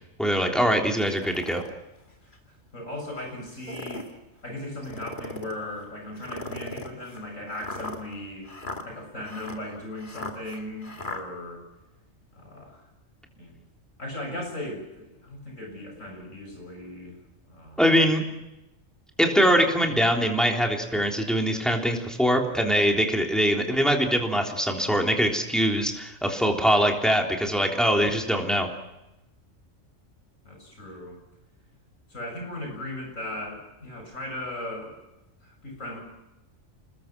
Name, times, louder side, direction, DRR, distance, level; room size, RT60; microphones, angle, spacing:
voice 1, 0.2-1.6 17.8-18.2 19.2-28.7, equal, ahead, 1 dB, 3.3 m, -23 dB
sound 1, 1.0-1.7 2.3-2.4 3.4-4.1 4.8-5.6 6.2-11.2, left 2 dB, 40° left, 2.4 m, -38 dB
voice 2, 2.7-4.1 4.4-8.5 8.8-11.6 12.3-12.8 13.4-13.6 14.0-17.2 17.5-17.8 30.4-31.2 32.1-35.0 35.4-36.0, left 1 dB, 75° left, 2 dB, 7.8 m, -37 dB
28.5 x 20.5 x 6.1 m, 0.94 s
omnidirectional pair, 1.4 m